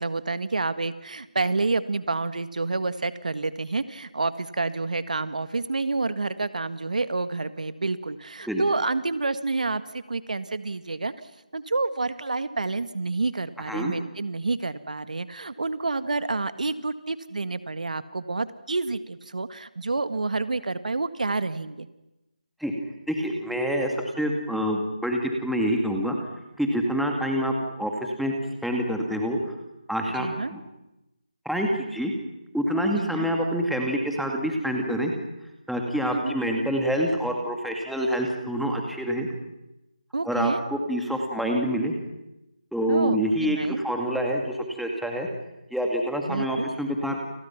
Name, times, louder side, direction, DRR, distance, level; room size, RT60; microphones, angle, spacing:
voice 1, 0.0-11.1 11.5-21.9 30.2-30.5 32.9-33.3 36.1-36.4 40.1-40.6 42.9-43.8 46.3-46.7, right 3 dB, 70° right, 11 dB, 1.8 m, -29 dB
voice 2, 23.1-26.2 26.6-28.3 28.6-29.4 29.9-30.6 31.5-32.1 32.5-35.1 35.7-39.3 40.2-41.9 42.7-45.3 45.7-47.2, equal, ahead, 1 dB, 2.1 m, -26 dB
30.0 x 27.5 x 6.0 m, 0.94 s
figure-of-eight pair, 170°, 4 cm